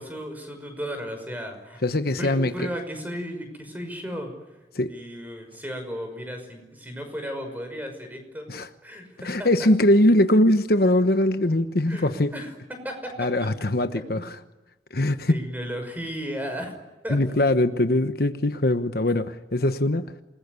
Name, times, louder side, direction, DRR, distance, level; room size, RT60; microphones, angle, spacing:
voice 1, 0.0-1.8 2.2-4.3 4.9-8.5 8.8-9.5 11.9-13.5 13.9-14.2 15.3-16.7 17.0-17.2, equal, 10° right, 5.8 m, -35 dB
voice 2, 1.8-2.7 4.7-4.9 8.5-8.7 9.2-12.3 13.2-14.4 14.9-15.4 17.1-20.1, left 1 dB, 55° left, 1.1 m, -21 dB
28.0 x 20.5 x 9.7 m
head